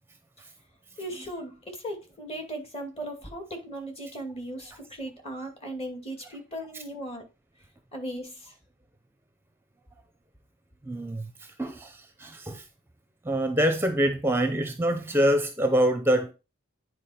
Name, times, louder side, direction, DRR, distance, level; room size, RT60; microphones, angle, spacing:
voice 1, 1.0-7.3 7.9-8.6, right 1 dB, 30° left, 2.3 m, -37 dB
voice 2, 10.9-11.3 11.6-12.6 13.3-16.3, equal, 10° right, 0.7 m, -25 dB
9.7 x 4.6 x 4.3 m
head